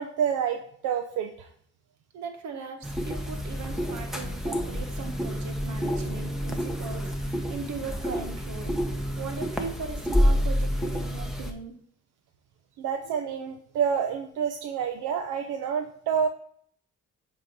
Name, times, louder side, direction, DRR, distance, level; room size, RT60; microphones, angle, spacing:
voice 1, 0.0-1.5 12.8-16.3, right 7 dB, 85° right, 4 dB, 0.7 m, -28 dB
voice 2, 2.1-8.7 9.2-11.8, right 4 dB, 70° right, 4 dB, 1.4 m, -39 dB
sound 1, 2.8-11.5, equal, ahead, 0.9 m, -28 dB
8.1 x 3.1 x 5.1 m, 0.63 s
cardioid pair, 90°, 30 cm